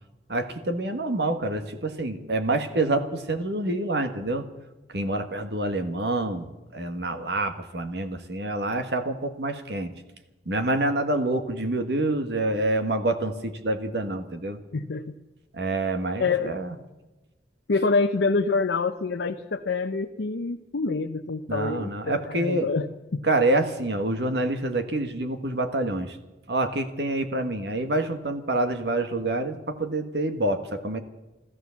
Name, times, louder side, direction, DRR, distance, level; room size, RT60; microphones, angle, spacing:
voice 1, 0.3-4.4 4.9-9.9 10.5-14.6 15.5-16.7 21.5-22.7 23.3-26.1 26.5-31.0, right 2 dB, 70° right, 7 dB, 1.6 m, -27 dB
voice 2, 14.7-15.1 16.2-16.6 17.7-23.2, left 4 dB, 85° left, 4 dB, 0.7 m, -26 dB
14.5 x 14.0 x 7.1 m, 1.1 s
head